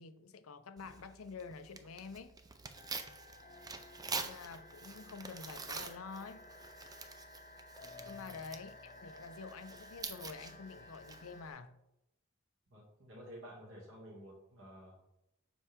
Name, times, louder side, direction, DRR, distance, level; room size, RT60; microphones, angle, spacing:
voice 1, 0.0-2.4 4.2-6.5 8.0-11.8, left 5 dB, 90° left, 0.5 m, -48 dB
Tearing, 0.8-11.5, right 4 dB, 20° right, 0.4 m, -47 dB
sound 1, 2.7-11.6, left 2 dB, 35° left, 0.7 m, -55 dB
voice 2, 8.0-8.4 12.7-15.0, equal, 65° right, 2.2 m, -52 dB
7.0 x 4.6 x 3.6 m
head